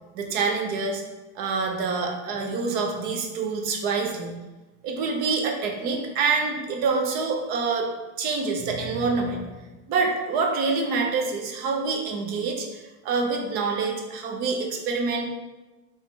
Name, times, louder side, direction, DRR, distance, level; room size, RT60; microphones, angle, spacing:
voice 1, 0.1-1.0 1.4-4.4 4.8-7.9 8.2-9.5 9.9-15.3, right 4 dB, 30° right, 2 dB, 0.5 m, -26 dB
4.5 x 3.0 x 3.3 m, 1.2 s
supercardioid pair, 170°, 34 cm